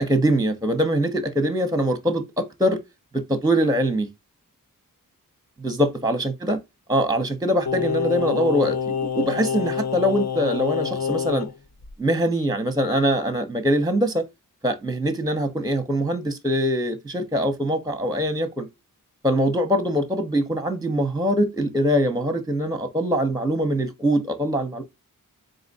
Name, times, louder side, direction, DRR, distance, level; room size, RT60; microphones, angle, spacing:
voice 1, 0.0-2.8 3.1-4.1 5.6-6.6 6.9-11.5 12.0-14.3 14.6-18.7 19.2-24.8, equal, 10° right, 0.8 m, -23 dB
Singing, 7.7-11.5 11.8-11.9, left 6 dB, 50° left, 0.6 m, -27 dB
3.9 x 2.4 x 4.0 m
wide cardioid pair, 55°, 35 cm